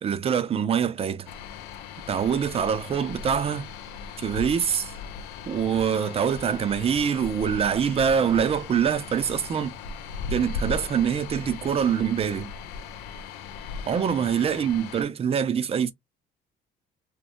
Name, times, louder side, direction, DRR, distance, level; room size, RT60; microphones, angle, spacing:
voice 1, 0.0-1.3 2.1-3.7 4.2-4.9 5.5-9.8 10.3-12.5 13.9-15.9, right 7 dB, 35° right, 0.5 m, -24 dB
sound 1, 1.3-15.0, left 5 dB, 85° left, 0.5 m, -38 dB
3.0 x 2.1 x 2.4 m
cardioid pair, 110°, 17 cm